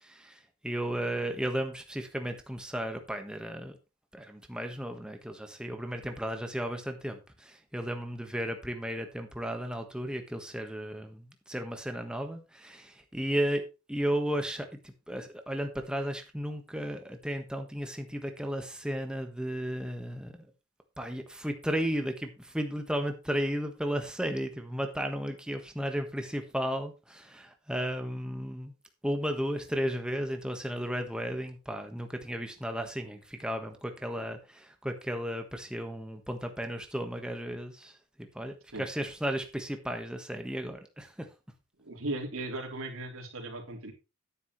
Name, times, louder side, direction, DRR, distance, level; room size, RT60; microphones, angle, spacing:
voice 1, 0.0-3.8 4.1-13.6 13.9-14.7 15.1-20.5 21.0-28.7 29.0-37.9 38.2-41.3, equal, 5° right, 5 dB, 1.4 m, -34 dB
voice 2, 41.8-43.9, right 2 dB, 75° right, 1 dB, 3.5 m, -37 dB
11.0 x 9.9 x 3.2 m, 0.29 s
head